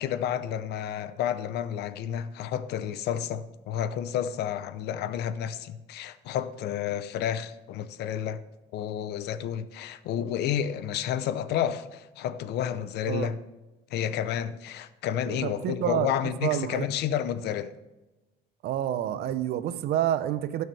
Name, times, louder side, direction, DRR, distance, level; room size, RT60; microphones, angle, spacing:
voice 1, 0.0-8.4 8.7-13.4 13.9-17.7, left 9 dB, 75° left, 0.7 m, -30 dB
voice 2, 15.2-16.9 18.6-20.6, right 11 dB, 70° right, 0.7 m, -28 dB
16.5 x 6.4 x 3.3 m
cardioid pair, 110°, 17 cm